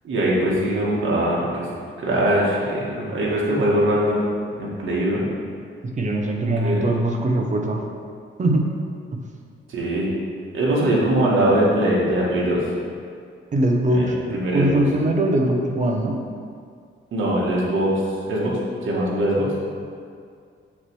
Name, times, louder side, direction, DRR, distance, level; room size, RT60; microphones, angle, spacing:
voice 1, 0.0-1.7 2.0-4.3 4.6-5.2 6.6-6.9 9.7-10.1 10.5-12.7 13.9-14.8 17.1-18.0 18.3-19.6, right 1 dB, 70° right, -5 dB, 1.6 m, -22 dB
voice 2, 6.0-7.8 8.4-8.7 13.5-16.2, right 1 dB, 35° right, 2 dB, 0.8 m, -21 dB
7.1 x 3.2 x 6.1 m, 2.2 s
wide cardioid pair, 150°, 21 cm